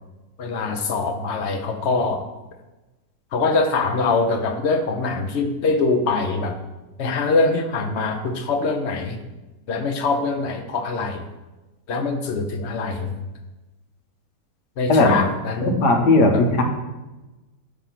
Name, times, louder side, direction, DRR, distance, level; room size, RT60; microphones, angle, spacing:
voice 1, 0.4-2.2 3.3-6.6 7.0-9.2 9.7-11.2 11.9-13.2 14.8-15.7 16.3-16.4, left 3 dB, 55° left, 5 dB, 0.8 m, -23 dB
voice 2, 15.6-16.6, left 2 dB, 75° left, 3 dB, 1.5 m, -17 dB
7.3 x 3.5 x 5.7 m, 1.1 s
omnidirectional pair, 1.8 m